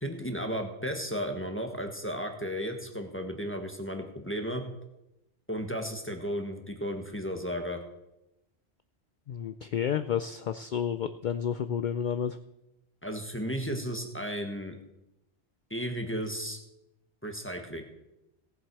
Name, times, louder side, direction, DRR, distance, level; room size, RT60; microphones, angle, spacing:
voice 1, 0.0-4.6 5.5-7.8 13.0-14.7 15.7-16.6 17.2-17.8, equal, 10° left, 4 dB, 1.3 m, -34 dB
voice 2, 9.3-12.4, left 8 dB, 60° left, 11 dB, 0.6 m, -31 dB
18.0 x 7.5 x 4.7 m, 0.91 s
omnidirectional pair, 1.1 m